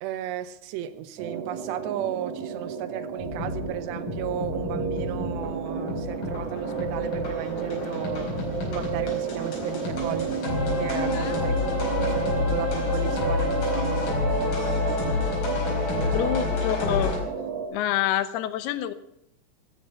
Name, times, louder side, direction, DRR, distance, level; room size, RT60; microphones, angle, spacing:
voice 1, 0.0-10.3 10.7-11.6 12.1-14.2 14.4-15.1 15.9-16.5, right 11 dB, 85° right, 12 dB, 3.2 m, -34 dB
sound 1, 1.2-17.7, right 6 dB, 60° right, 3.6 m, -32 dB
sound 2, 3.2-17.2, left 4 dB, 55° left, 6.3 m, -29 dB
voice 2, 10.9-11.4 16.0-17.1 17.7-18.9, left 12 dB, 75° left, 13 dB, 2.8 m, -27 dB
16.5 x 13.0 x 5.8 m, 0.79 s
omnidirectional pair, 4.8 m